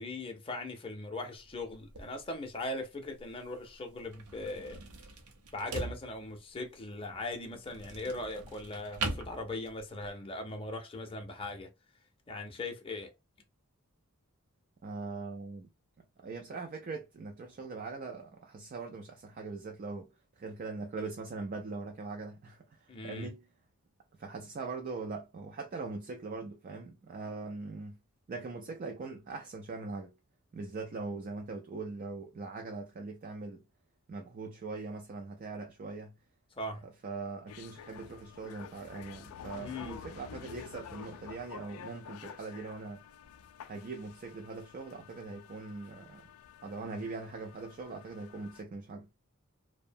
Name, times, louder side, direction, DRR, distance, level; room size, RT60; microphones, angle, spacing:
voice 1, 0.0-4.8 5.5-11.7 12.3-13.1 22.9-23.3 36.6-36.8 39.5-40.0, left 2 dB, 25° left, 0.6 m, -39 dB
sound 1, 1.4-10.1, right 3 dB, 90° right, 0.6 m, -43 dB
voice 2, 14.8-15.7 16.2-20.1 20.4-23.5 24.2-28.0 28.3-30.1 30.5-33.6 34.1-36.1 37.0-43.0 43.7-46.3 46.6-49.1, right 3 dB, 40° right, 0.3 m, -41 dB
sound 2, 37.5-48.6, left 8 dB, 70° left, 0.3 m, -50 dB
2.6 x 2.1 x 2.5 m
head